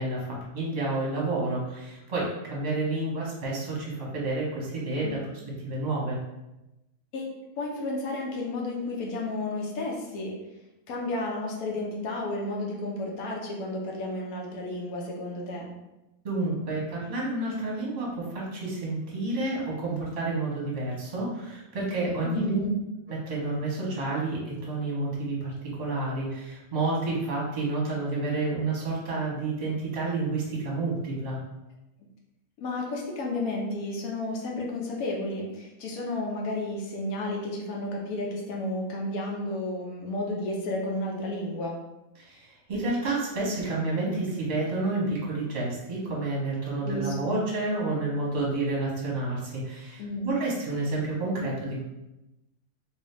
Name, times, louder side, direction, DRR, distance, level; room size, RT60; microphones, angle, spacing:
voice 1, 0.0-5.2 5.6-6.2 16.2-22.6 23.1-31.4 42.2-51.8, right 2 dB, 35° right, -4 dB, 0.9 m, -30 dB
voice 2, 7.6-10.3 10.9-15.7 22.2-22.7 32.6-41.8 46.8-47.4 50.0-50.3, left 2 dB, 70° left, -1 dB, 1.1 m, -32 dB
2.9 x 2.7 x 3.3 m, 0.96 s
omnidirectional pair, 1.7 m